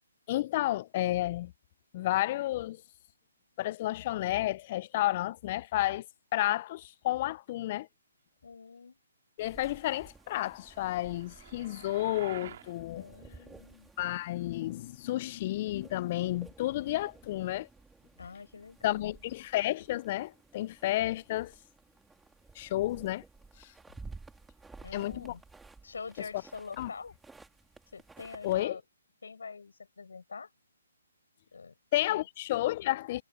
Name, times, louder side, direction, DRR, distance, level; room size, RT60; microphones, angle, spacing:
voice 1, 0.3-1.5 1.9-2.8 3.6-6.1 6.3-7.9 9.4-13.0 14.0-17.7 18.8-21.5 22.6-23.2 23.6-23.7 24.9-25.3 26.3-26.4 26.8-26.9 28.4-28.8 31.9-33.2, left 15 dB, 35° left, 0.4 m, -31 dB
voice 2, 8.4-9.0 12.9-13.9 18.2-19.2 24.8-25.4 25.8-27.1 27.9-28.8 29.2-30.5 31.5-31.8 32.1-32.2, left 5 dB, 80° left, 4.9 m, -45 dB
sound 1, 9.4-28.7, right 3 dB, 5° right, 2.3 m, -54 dB
sound 2, 10.5-12.7, right 10 dB, 50° right, 3.1 m, -49 dB
hypercardioid pair, 150°, 0 cm